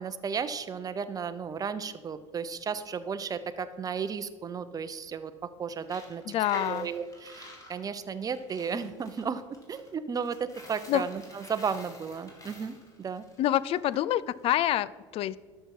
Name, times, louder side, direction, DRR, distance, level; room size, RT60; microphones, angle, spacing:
voice 1, 0.0-6.2 6.5-9.4 9.7-13.2, right 6 dB, 25° right, 12 dB, 0.7 m, -34 dB
Coin (dropping), 5.8-14.0, left 2 dB, 20° left, 2.8 m, -49 dB
voice 2, 6.3-6.9 10.9-11.0 13.4-15.4, left 13 dB, 40° left, 20 dB, 0.4 m, -27 dB
12.5 x 5.6 x 6.0 m, 1.5 s
figure-of-eight pair, 75°, 15 cm